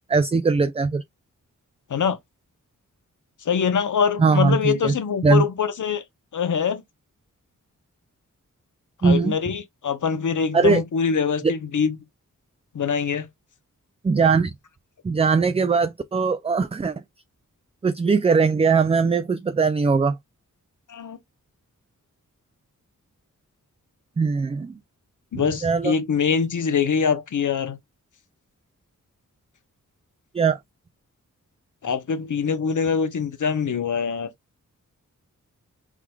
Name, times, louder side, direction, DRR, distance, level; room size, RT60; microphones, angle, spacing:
voice 1, 0.1-1.0 4.2-4.9 5.2-5.4 9.0-9.3 10.5-10.8 11.4-11.5 14.0-14.5 15.0-16.9 17.8-20.2 24.2-24.8 25.3-25.9 30.3-30.6, right 4 dB, 20° right, 0.3 m, -20 dB
voice 2, 3.4-6.0 6.3-6.8 9.0-12.0 12.7-13.3 20.9-21.2 25.3-27.8 31.8-34.3, left 6 dB, 65° left, 1.0 m, -24 dB
4.6 x 3.7 x 2.3 m
wide cardioid pair, 100°, 32 cm